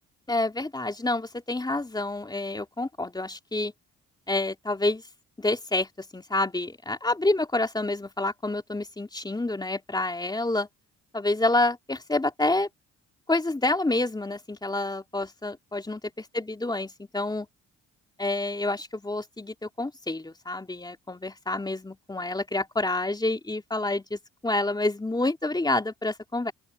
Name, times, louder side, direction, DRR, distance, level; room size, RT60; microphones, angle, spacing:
voice 1, 0.3-3.7 4.3-5.0 5.4-10.7 11.1-12.7 13.3-16.0 16.3-17.5 18.2-26.5, left 2 dB, 15° left, 3.4 m, -28 dB
open air
cardioid pair, 90°, 30 cm